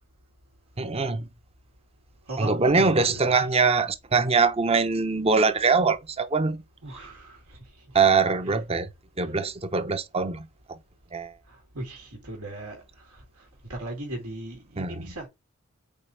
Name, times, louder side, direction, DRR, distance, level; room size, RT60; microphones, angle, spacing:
voice 1, 0.8-1.3 2.4-6.6 7.9-8.9 9.2-10.8 11.1-11.3 14.8-15.1, right 4 dB, 25° right, 0.7 m, -23 dB
voice 2, 2.3-3.5 6.8-7.8 8.4-8.6 9.2-9.3 11.5-15.3, right 2 dB, 85° right, 2.1 m, -38 dB
5.4 x 4.2 x 4.3 m
head